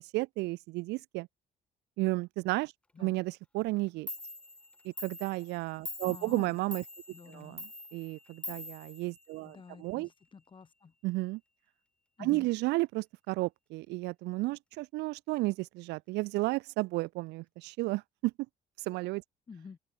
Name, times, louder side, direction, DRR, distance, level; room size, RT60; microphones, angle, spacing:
voice 1, 0.1-1.3 2.0-2.7 3.0-4.1 4.8-6.8 7.3-10.1 11.0-11.4 12.2-18.3 18.9-19.2, right 21 dB, 90° right, 1.1 m, -33 dB
Clock, 3.8-3.9 4.1-9.7, left 1 dB, 5° left, 3.2 m, -45 dB
voice 2, 6.1-6.6 7.1-7.6 9.4-10.9 12.2-12.5 19.5-19.8, left 5 dB, 30° left, 2.1 m, -49 dB
open air
cardioid pair, 110°, 17 cm